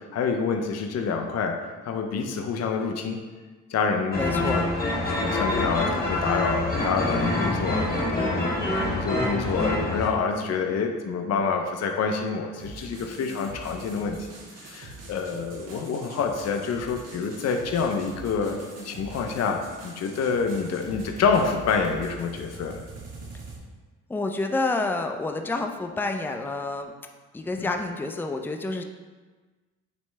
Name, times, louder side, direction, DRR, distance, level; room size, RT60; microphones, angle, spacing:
voice 1, 0.1-1.5 1.8-3.2 3.7-4.7 5.2-14.2 14.6-18.6 18.8-22.9 27.6-27.7, left 5 dB, 60° left, 3 dB, 0.7 m, -27 dB
sound 1, 4.1-10.1, left 2 dB, 30° left, 1.8 m, -26 dB
voice 2, 4.2-4.7 24.1-26.9 27.3-28.8, left 3 dB, 5° left, 5 dB, 0.4 m, -28 dB
sound 2, 12.6-23.6, right 3 dB, 60° right, 1.6 m, -43 dB
9.2 x 3.2 x 3.2 m, 1.3 s
cardioid pair, 90°, 30 cm